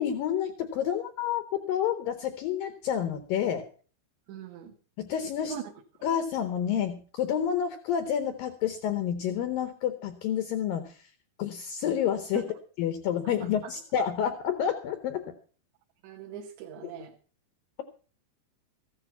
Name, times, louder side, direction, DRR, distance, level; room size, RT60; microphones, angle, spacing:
voice 1, 0.0-3.7 5.0-5.5 6.0-11.1 11.4-12.4 12.8-15.3, left 9 dB, 85° left, 10 dB, 2.0 m, -29 dB
voice 2, 4.3-4.7 5.4-5.6 12.3-12.5 13.6-13.7 16.0-17.1, right 10 dB, 75° right, 3 dB, 3.2 m, -40 dB
14.5 x 10.5 x 5.5 m, 0.40 s
omnidirectional pair, 5.4 m